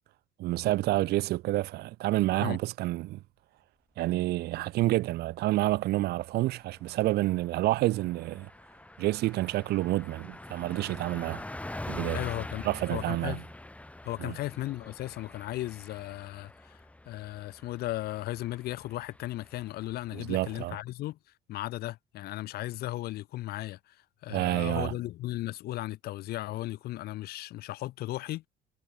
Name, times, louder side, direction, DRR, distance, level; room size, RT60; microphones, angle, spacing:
voice 1, 0.4-3.2 4.0-8.5 9.0-11.4 11.9-12.2 12.6-13.4 14.2-14.4 20.1-20.8 24.3-25.0, right 17 dB, 75° right, 0.6 m, -28 dB
Car passing by, 5.3-5.7 6.1-6.2 6.5-20.8, left 1 dB, 10° left, 2.2 m, -45 dB
voice 2, 12.1-13.4 14.0-16.8 17.1-21.2 21.5-24.0 24.2-28.5, left 16 dB, 65° left, 0.6 m, -36 dB
cardioid pair, 110°, 17 cm